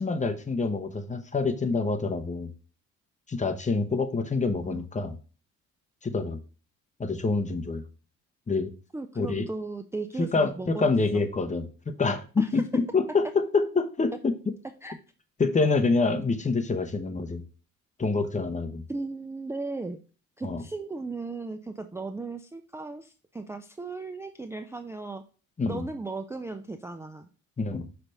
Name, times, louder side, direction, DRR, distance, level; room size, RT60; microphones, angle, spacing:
voice 1, 0.0-2.5 3.3-5.2 6.0-6.4 7.0-7.8 8.5-8.7 9.2-9.4 10.2-14.3 15.4-17.4 18.0-18.8 20.4-20.6 25.6-25.9 27.6-27.9, left 3 dB, 25° left, 7 dB, 0.9 m, -26 dB
voice 2, 8.9-11.3 12.4-12.5 14.8-14.9 18.9-20.0 20.4-25.2 25.7-27.3, right 3 dB, 10° right, 8 dB, 0.4 m, -36 dB
5.9 x 3.4 x 5.3 m, 0.37 s
cardioid pair, 90°, 30 cm